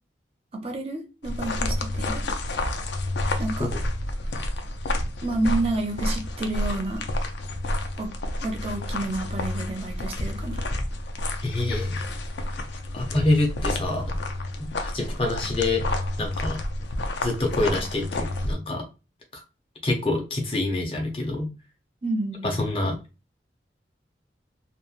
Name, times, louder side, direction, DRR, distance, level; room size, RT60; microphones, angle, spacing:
voice 1, 0.5-2.2 3.4-3.7 5.2-7.0 8.0-8.1 8.4-10.6 22.0-22.7, right 2 dB, 35° right, 0.5 m, -29 dB
sound 1, 1.2-18.5, left 1 dB, 75° left, 0.4 m, -29 dB
voice 2, 11.4-12.0 12.9-14.2 14.6-15.8 16.2-16.6 17.2-18.9 19.3-19.4 19.8-21.5 22.4-23.0, left 2 dB, 30° left, 0.6 m, -26 dB
2.9 x 2.1 x 2.4 m
head